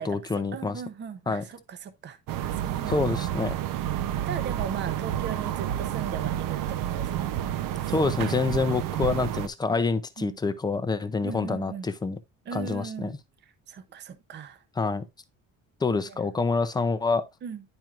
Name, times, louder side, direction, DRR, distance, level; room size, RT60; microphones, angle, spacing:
voice 1, 0.0-0.8 1.3-1.4 2.9-3.5 7.9-12.2 12.5-13.1 14.8-15.0 15.8-17.3, left 4 dB, 15° left, 0.4 m, -27 dB
voice 2, 0.5-3.3 4.3-7.3 7.8-8.0 10.2-10.4 11.2-11.9 12.5-13.1 13.4-14.6 16.1-16.3 17.4-17.6, right 7 dB, 30° right, 0.7 m, -38 dB
sound 1, 2.3-9.5, right 11 dB, 75° right, 0.7 m, -30 dB
10.5 x 4.4 x 2.4 m
cardioid pair, 160°, 33 cm